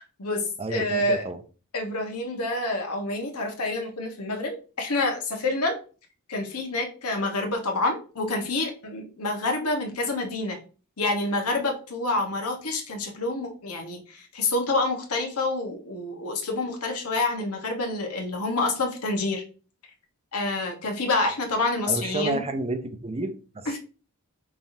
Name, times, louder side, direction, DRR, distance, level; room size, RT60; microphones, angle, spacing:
voice 1, 0.0-1.2 1.7-5.8 6.3-10.6 11.0-19.4 20.3-22.4 23.7-23.8, left 2 dB, 85° left, 1.2 m, -28 dB
voice 2, 0.6-1.4 21.9-23.8, right 2 dB, 25° right, 0.5 m, -31 dB
5.3 x 3.4 x 2.7 m
head